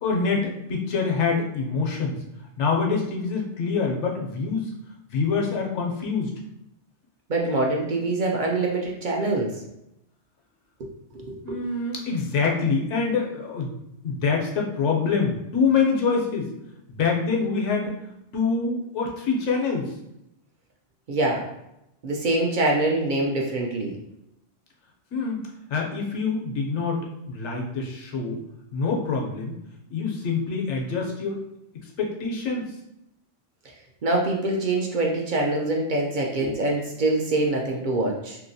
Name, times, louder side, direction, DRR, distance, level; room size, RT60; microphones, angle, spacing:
voice 1, 0.0-2.2 2.6-4.7 5.1-6.3 11.4-13.7 14.0-16.5 16.9-18.0 18.3-19.9 25.1-25.4 25.7-28.4 28.7-29.5 29.9-31.4 31.7-32.8 36.4-36.6, left 4 dB, 80° left, 0 dB, 1.0 m, -25 dB
voice 2, 7.3-9.6 10.8-10.9 11.1-11.6 21.1-21.4 22.0-23.9 34.0-38.4, right 2 dB, 60° right, -1 dB, 0.5 m, -24 dB
2.8 x 2.8 x 2.6 m, 0.84 s
omnidirectional pair, 1.2 m